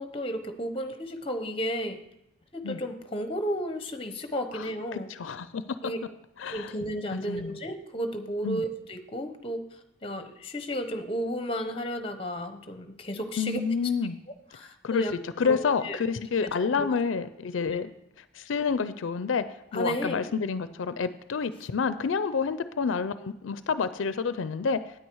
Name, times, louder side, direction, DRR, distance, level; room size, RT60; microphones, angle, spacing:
voice 1, 0.0-2.0 2.5-5.1 5.8-6.0 6.5-9.6 10.0-13.6 14.5-15.1 15.4-15.6 15.8-16.0 16.4-16.9 17.6-17.8 19.7-20.3, equal, 30° left, 8 dB, 0.9 m, -33 dB
voice 2, 4.5-5.6 6.4-6.7 7.1-7.6 8.4-8.6 13.4-14.2 14.8-15.0 15.4-17.9 18.3-19.4 19.7-24.8, left 5 dB, 80° left, 13 dB, 0.5 m, -29 dB
9.3 x 9.2 x 4.7 m, 0.87 s
head